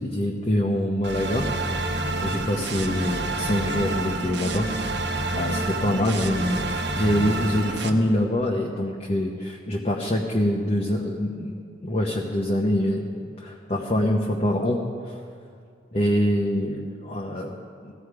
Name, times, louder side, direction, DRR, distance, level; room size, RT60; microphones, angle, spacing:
voice 1, 0.0-1.5 2.2-4.7 5.3-13.1 13.4-15.2 15.9-17.6 17.8-17.9, left 1 dB, 35° left, -1 dB, 1.0 m, -25 dB
sound 1, 1.0-7.9, right 2 dB, 65° right, 1.1 m, -28 dB
17.0 x 14.5 x 4.9 m, 2.2 s
head